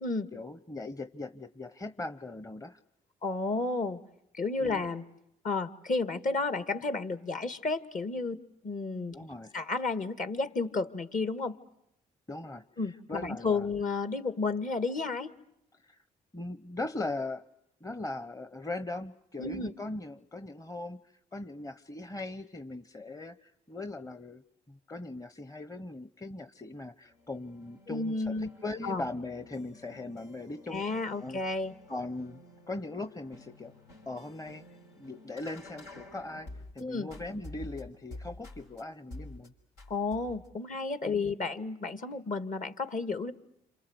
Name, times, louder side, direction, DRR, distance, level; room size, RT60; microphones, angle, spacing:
voice 1, 0.3-2.8 4.6-4.8 9.1-9.5 12.3-13.7 15.8-16.0 16.3-17.4 17.8-21.0 21.3-24.4 24.7-31.4 31.9-33.7 34.1-34.7 35.0-39.5 41.0-41.2, left 2 dB, 20° left, 11 dB, 1.0 m, -40 dB
voice 2, 3.2-4.0 4.3-5.0 5.4-8.4 8.6-9.1 9.5-11.6 12.8-15.4 19.4-19.7 27.9-28.5 28.8-29.0 30.7-31.7 36.8-37.1 39.9-43.3, left 3 dB, 45° left, 10 dB, 2.0 m, -32 dB
sound 1, 27.0-36.8 37.1-38.8 39.1-39.5 39.8-40.5, left 2 dB, 90° left, 5.4 m, -50 dB
28.0 x 26.5 x 8.0 m, 0.79 s
supercardioid pair, 50°, 18 cm